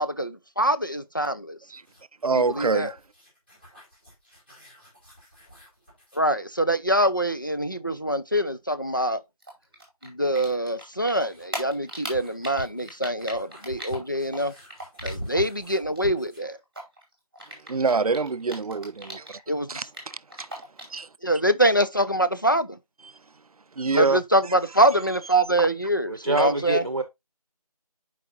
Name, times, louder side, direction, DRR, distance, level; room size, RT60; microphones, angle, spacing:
voice 1, 0.0-1.6 2.3-2.9 6.1-9.2 10.0-14.5 15.0-16.6 19.5-19.8 21.2-22.8 23.9-26.8, right 1 dB, 30° left, 0.5 m, -24 dB
sound 1, 1.7-6.3 8.6-8.7 10.7-16.5, equal, 15° left, 3.5 m, -43 dB
voice 2, 2.2-3.0 17.5-19.4 19.7-20.5 20.9-21.1 23.0-23.2 23.7-24.2 25.6-25.7, right 4 dB, 70° right, 0.4 m, -26 dB
Typing, 9.4-10.8 11.1-15.6 15.8-19.4 19.7-21.0, right 1 dB, 10° right, 1.8 m, -38 dB
voice 3, 26.1-27.0, right 2 dB, 40° right, 0.8 m, -25 dB
10.5 x 4.8 x 2.5 m
figure-of-eight pair, 180°, 20 cm